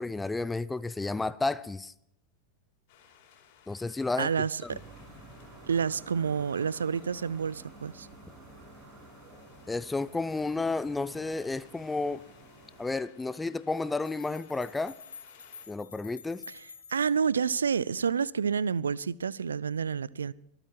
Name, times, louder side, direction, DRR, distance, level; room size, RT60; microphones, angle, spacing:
voice 1, 0.0-1.9 3.7-4.3 4.6-4.8 9.7-12.2 12.8-14.9 15.7-16.4, left 3 dB, 10° left, 0.6 m, -32 dB
sound 1, 2.9-15.7, left 8 dB, 45° left, 4.5 m, -61 dB
voice 2, 4.2-4.8 5.7-8.1 16.5-20.3, right 6 dB, 70° right, 0.5 m, -29 dB
sound 2, 4.7-13.0, right 2 dB, 25° right, 7.1 m, -51 dB
sound 3, 14.1-17.2, left 6 dB, 70° left, 2.6 m, -49 dB
25.5 x 9.0 x 4.5 m
figure-of-eight pair, 90°, 0 cm